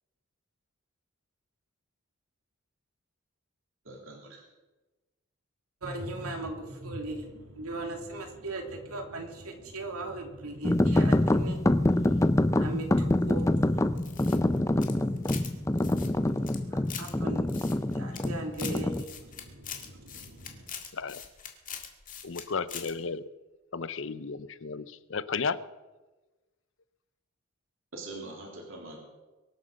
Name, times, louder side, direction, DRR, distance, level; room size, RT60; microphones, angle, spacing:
voice 1, 3.8-4.5 27.9-29.0, right 2 dB, 65° right, 0 dB, 3.2 m, -43 dB
voice 2, 5.8-20.7, right 2 dB, 90° right, 3 dB, 2.8 m, -40 dB
sound 1, 10.6-19.0, left 1 dB, 15° left, 0.5 m, -26 dB
sound 2, 14.0-15.5 15.8-17.1 17.5-18.3 18.5-22.4 22.7-22.9, left 8 dB, 35° left, 1.9 m, -42 dB
voice 3, 22.2-23.3 23.7-25.6, left 5 dB, 55° left, 15 dB, 0.6 m, -34 dB
23.5 x 8.0 x 6.4 m, 1.2 s
head